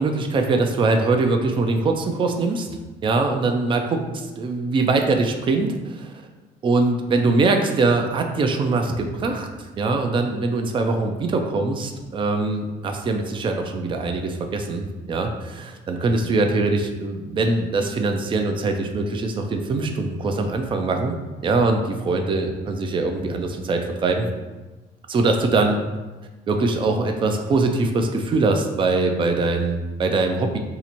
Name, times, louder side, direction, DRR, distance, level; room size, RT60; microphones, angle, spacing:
voice 1, 0.0-2.7 3.0-6.1 6.6-9.5 9.8-21.2 21.4-24.3 25.1-25.8 26.5-30.6, right 3 dB, 30° right, 4 dB, 0.4 m, -22 dB
2.8 x 2.5 x 4.3 m, 1.2 s
cardioid pair, 110°, 17 cm